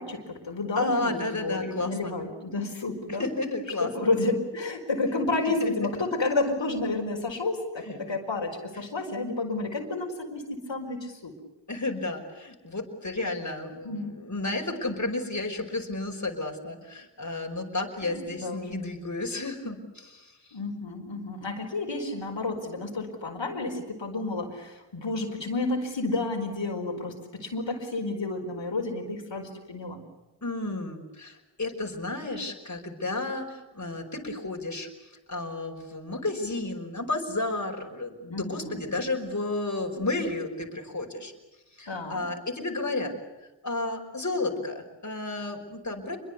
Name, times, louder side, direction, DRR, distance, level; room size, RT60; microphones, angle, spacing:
voice 1, 0.0-3.3 3.8-11.3 13.8-14.2 18.0-18.7 20.5-30.0 38.3-38.8 41.9-42.2, left 2 dB, 80° left, 2 dB, 4.8 m, -31 dB
voice 2, 0.8-2.1 3.1-4.1 5.6-5.7 7.9-8.0 8.8-8.9 11.7-20.3 30.4-41.3 41.8-43.1 43.6-46.2, left 2 dB, 40° left, 2 dB, 5.4 m, -32 dB
27.5 x 23.0 x 8.4 m, 1.1 s
wide cardioid pair, 60°, 44 cm